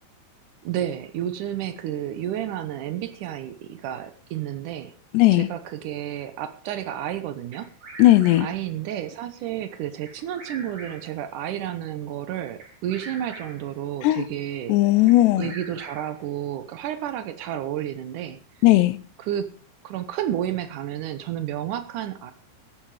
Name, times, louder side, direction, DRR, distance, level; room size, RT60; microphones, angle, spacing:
voice 1, 0.6-5.0 5.3-7.7 8.4-14.8 15.4-18.4 19.2-19.5 19.8-22.3, right 11 dB, 90° right, 11 dB, 1.8 m, -31 dB
voice 2, 5.1-5.5 8.0-8.5 14.0-14.2 14.7-15.5 18.6-19.0, left 16 dB, 80° left, 16 dB, 2.9 m, -17 dB
Bird vocalization bird call bird song, 7.5-8.7 10.1-11.2 12.6-13.8 15.1-16.3, right 2 dB, 45° right, 5.1 m, -43 dB
15.5 x 12.0 x 4.8 m, 0.37 s
omnidirectional pair, 5.1 m